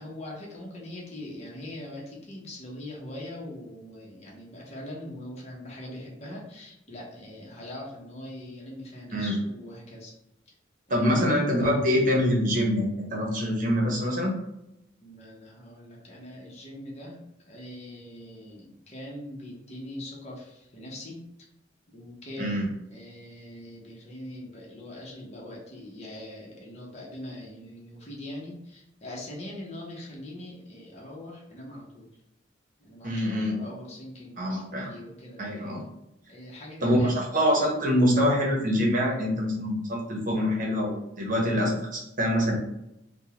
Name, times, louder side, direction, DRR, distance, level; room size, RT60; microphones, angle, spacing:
voice 1, 0.0-10.1 10.5-10.6 10.9-11.1 15.0-21.2 21.9-22.5 22.9-32.1 32.8-35.4 36.3-37.3, left 1 dB, 35° left, -3 dB, 0.9 m, -42 dB
voice 2, 10.9-14.3 22.4-22.7 33.0-33.6 34.4-34.9 35.4-35.8 36.8-42.5, equal, 45° right, -1 dB, 0.9 m, -25 dB
3.5 x 2.3 x 2.9 m, 0.85 s
head